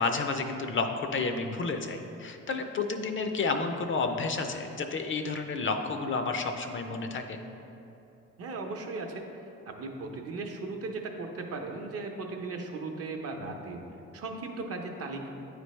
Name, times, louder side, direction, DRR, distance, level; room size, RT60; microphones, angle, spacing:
voice 1, 0.0-7.4, left 4 dB, 40° left, 6 dB, 0.5 m, -31 dB
voice 2, 8.4-9.2 9.8-13.8 14.1-15.3, right 3 dB, 50° right, 3 dB, 0.7 m, -37 dB
9.1 x 3.3 x 3.1 m, 2.9 s
cardioid pair, 90°, 30 cm